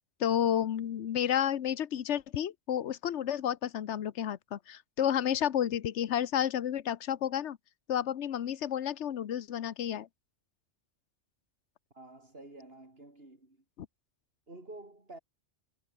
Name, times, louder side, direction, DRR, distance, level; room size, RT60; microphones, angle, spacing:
voice 1, 0.2-7.6 7.9-10.1, left 10 dB, 75° left, 1.2 m, -31 dB
voice 2, 11.9-13.6 14.5-15.2, right 2 dB, 55° right, 5.0 m, -50 dB
omnidirectional pair, 1.2 m